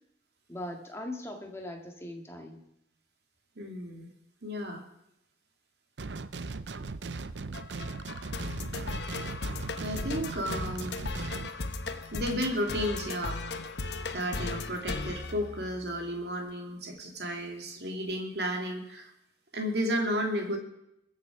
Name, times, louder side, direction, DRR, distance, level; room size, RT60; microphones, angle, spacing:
voice 1, 0.5-2.6, left 1 dB, 15° left, 2 dB, 1.9 m, -40 dB
voice 2, 3.6-4.1 4.4-4.8 9.4-11.0 12.1-13.4 14.1-19.1 19.5-20.6, equal, 65° right, 2 dB, 2.6 m, -33 dB
sound 1, 6.0-11.5, right 3 dB, 80° right, 0.7 m, -38 dB
sound 2, 7.5-16.1, left 3 dB, 70° left, 0.9 m, -37 dB
22.0 x 7.5 x 4.9 m, 0.80 s
head